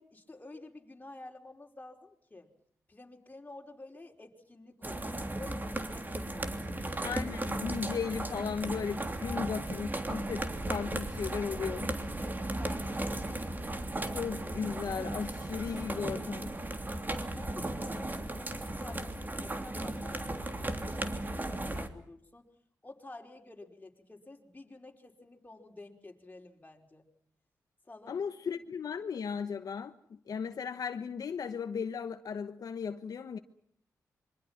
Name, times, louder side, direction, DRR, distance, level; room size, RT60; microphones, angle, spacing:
voice 1, 0.0-2.5 2.9-7.2 9.3-9.5 12.2-13.7 17.3-22.5 22.8-27.1 27.8-28.2, left 2 dB, 25° left, 5.0 m, -50 dB
sound 1, 4.8-21.9, right 1 dB, 30° right, 3.1 m, -36 dB
voice 2, 7.0-11.9 14.1-16.5 28.1-33.4, left 6 dB, 70° left, 1.1 m, -36 dB
26.5 x 24.5 x 6.0 m
cardioid pair, 60°, 7 cm